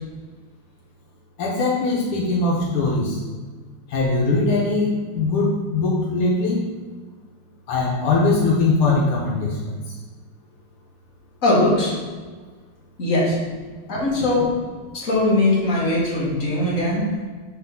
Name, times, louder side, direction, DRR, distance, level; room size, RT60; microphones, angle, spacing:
voice 1, 1.4-3.2 3.9-6.7 7.7-9.7, left 3 dB, 80° left, -3 dB, 2.0 m, -21 dB
voice 2, 11.4-11.9 13.0-13.4 13.9-14.5 14.9-17.1, left 2 dB, 40° left, -6 dB, 2.1 m, -20 dB
4.6 x 4.5 x 5.6 m, 1.4 s
omnidirectional pair, 2.4 m